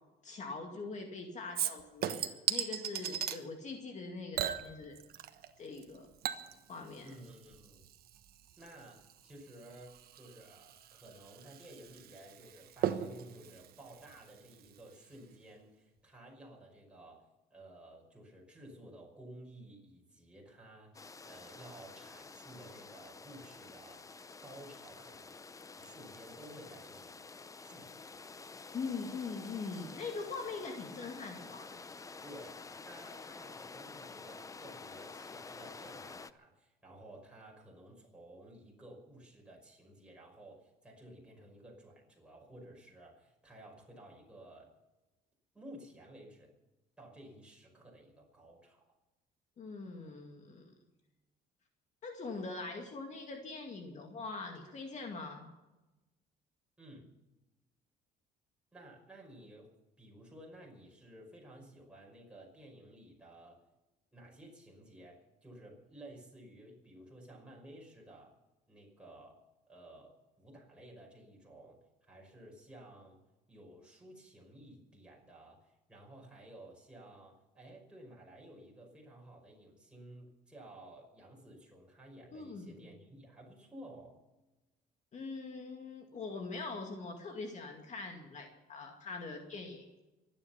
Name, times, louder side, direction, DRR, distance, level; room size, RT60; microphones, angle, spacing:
voice 1, 0.2-4.9 5.6-6.1 6.7-7.1 28.7-31.8 49.6-50.7 52.0-55.5 82.3-82.9 85.1-90.0, left 4 dB, 45° left, 3 dB, 2.2 m, -42 dB
Chink clink / Liquid, 1.5-3.4 4.3-5.5 5.8-14.8 15.1-15.2, right 10 dB, 65° right, 1.3 m, -39 dB
voice 2, 7.0-7.8 8.6-25.3 25.7-27.3 27.6-28.2 32.2-44.7 45.5-46.5 47.0-48.8 56.8-57.1 58.7-59.7 60.0-63.6 64.1-68.4 68.7-69.4 69.7-73.2 73.5-84.2, right 1 dB, 5° right, -2 dB, 5.5 m, -54 dB
sound 1, 20.9-36.3, left 4 dB, 20° left, 0.6 m, -50 dB
24.5 x 9.7 x 5.7 m, 1.1 s
cardioid pair, 110°, 17 cm